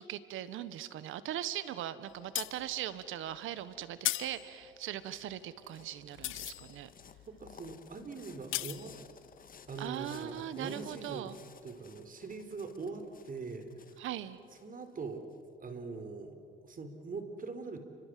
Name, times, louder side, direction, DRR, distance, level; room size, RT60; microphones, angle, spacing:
voice 1, 0.0-6.9 9.8-11.4 14.0-14.4, right 11 dB, 85° right, 14 dB, 1.4 m, -40 dB
sound 1, 2.1-10.6 11.0-11.1, left 15 dB, 85° left, 0.8 m, -40 dB
sound 2, 4.5-15.4, left 6 dB, 45° left, 1.7 m, -58 dB
voice 2, 7.3-8.9 9.7-14.1 14.6-15.2 15.6-17.8, right 4 dB, 45° right, 8 dB, 4.0 m, -43 dB
29.5 x 25.5 x 7.8 m, 2.2 s
cardioid pair, 90°, 20 cm